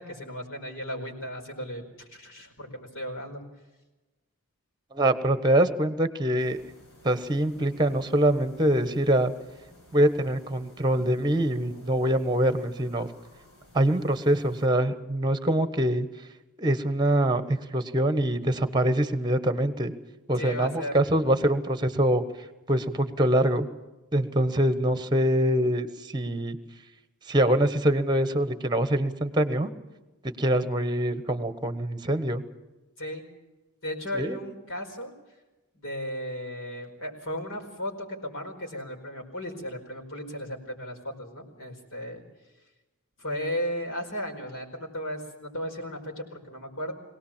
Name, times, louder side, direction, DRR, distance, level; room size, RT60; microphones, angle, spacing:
voice 1, 0.0-3.4 20.4-21.0 33.0-33.2 33.8-35.1 35.7-42.2 43.2-46.9, equal, 60° left, 1 dB, 4.9 m, -35 dB
voice 2, 4.9-6.6 7.0-9.3 9.9-13.1 13.7-16.1 16.6-19.9 20.3-22.2 22.7-23.7 24.1-26.6 27.3-29.7 30.4-32.4 34.1-34.4, right 1 dB, 20° right, 11 dB, 1.3 m, -24 dB
sound 1, 6.4-14.7, left 1 dB, 85° left, 7.2 m, -53 dB
22.5 x 18.0 x 7.4 m, 1.1 s
head